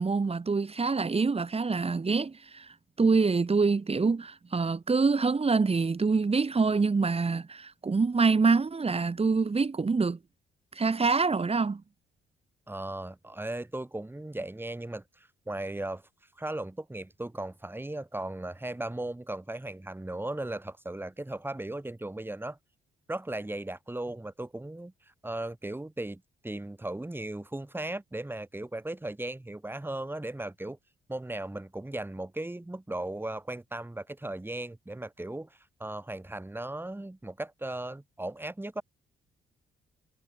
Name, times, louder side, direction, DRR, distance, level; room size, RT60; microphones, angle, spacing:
voice 1, 0.0-2.7 3.0-10.2 10.8-11.8, right 4 dB, 30° right, 7.6 m, -25 dB
voice 2, 12.7-16.0 16.4-22.6 23.1-24.9 25.2-30.8 31.1-38.8, right 1 dB, 10° right, 7.8 m, -37 dB
cardioid pair, 90°, 20 cm